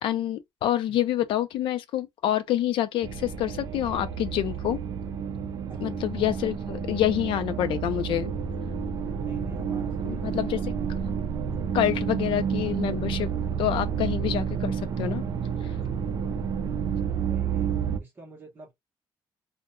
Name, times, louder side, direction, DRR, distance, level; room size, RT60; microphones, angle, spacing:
voice 1, 0.0-4.8 5.8-8.3 10.0-10.6 11.7-13.3 13.6-15.2 15.6-15.7, left 12 dB, 80° left, 0.4 m, -27 dB
sound 1, 3.0-18.0, right 7 dB, 50° right, 0.4 m, -30 dB
voice 2, 5.7-6.5 8.1-8.3 9.1-10.7 17.2-18.7, right 3 dB, 25° right, 0.8 m, -46 dB
2.2 x 2.1 x 2.9 m
cardioid pair, 180°, 9 cm